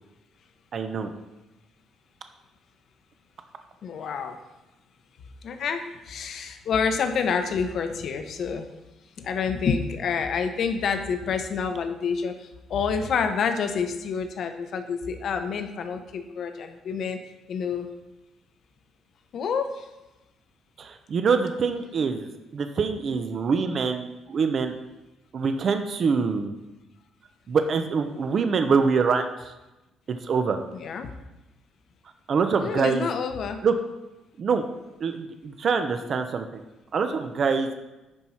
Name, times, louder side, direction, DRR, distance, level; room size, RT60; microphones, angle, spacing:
voice 1, 0.7-1.1 20.8-24.7 25.3-26.5 27.5-29.3 30.1-30.6 32.3-33.1 33.6-33.7 34.4-34.6 35.0-36.6 36.9-37.7, right 5 dB, 35° right, 7 dB, 0.6 m, -25 dB
voice 2, 3.8-4.4 5.4-8.7 9.2-17.2 17.5-17.9 19.3-19.9 30.7-31.1 32.6-33.6, left 6 dB, 50° left, 7 dB, 0.8 m, -28 dB
9.9 x 4.6 x 5.7 m, 1.0 s
cardioid pair, 165°, 0 cm